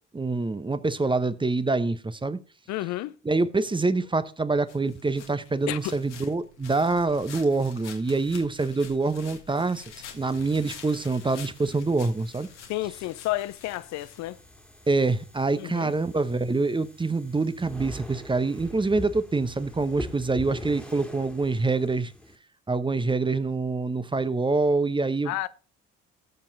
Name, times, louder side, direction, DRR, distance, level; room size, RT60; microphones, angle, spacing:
voice 1, 0.1-2.4 3.2-9.8 10.1-12.5 14.9-22.1 22.7-25.5, right 3 dB, 15° right, 0.9 m, -25 dB
voice 2, 2.7-3.2 5.7-5.9 12.7-14.4 15.6-15.9 25.3-25.5, left 16 dB, 50° left, 0.6 m, -31 dB
sound 1, 4.7-14.7, left 7 dB, 75° left, 1.8 m, -47 dB
sound 2, 10.1-22.4, equal, 5° left, 2.1 m, -44 dB
17.5 x 7.5 x 3.9 m
figure-of-eight pair, 50°, 35 cm